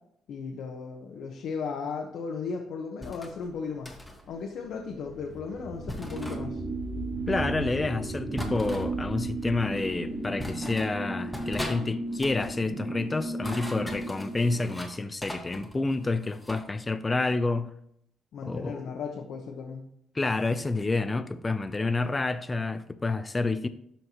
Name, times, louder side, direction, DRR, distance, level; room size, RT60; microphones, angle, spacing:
voice 1, 0.3-3.9 4.3-6.6 18.3-19.9, left 5 dB, 75° left, 1.0 m, -36 dB
sound 1, 3.0-3.3 3.8-4.2 5.9-6.4 8.4-8.9 9.8-9.9 10.4-10.9 11.3-11.8 12.1-12.5 13.2-14.9 15.2-16.6, left 1 dB, 5° left, 1.5 m, -39 dB
sound 2, 3.5-12.5, equal, 80° right, 2.0 m, -39 dB
sound 3, 6.1-14.8, right 2 dB, 30° right, 2.5 m, -35 dB
voice 2, 7.3-17.7 18.4-18.9 20.1-23.7, left 3 dB, 25° left, 0.5 m, -29 dB
12.5 x 4.5 x 3.0 m
cardioid pair, 90°, 0 cm